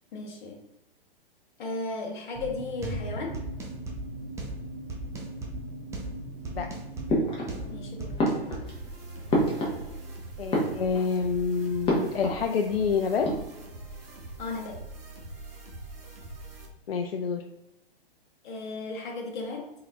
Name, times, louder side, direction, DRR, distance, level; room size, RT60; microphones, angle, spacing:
voice 1, 0.1-0.6 1.6-3.4 7.7-8.2 14.4-14.8 18.4-19.7, left 3 dB, 50° left, 0 dB, 1.2 m, -35 dB
sound 1, 2.3-8.6, right 1 dB, 10° right, 0.6 m, -37 dB
sound 2, 7.1-7.8 8.2-10.1 10.4-11.2 11.8-12.5 12.7-12.8 13.1-13.8, equal, 20° left, 1.0 m, -28 dB
sound 3, 8.7-16.7, right 2 dB, 70° right, 1.3 m, -43 dB
voice 2, 10.4-13.3 16.9-17.4, left 5 dB, 75° left, 4 dB, 0.4 m, -27 dB
4.2 x 3.8 x 2.4 m, 0.89 s
figure-of-eight pair, 110°, 30 cm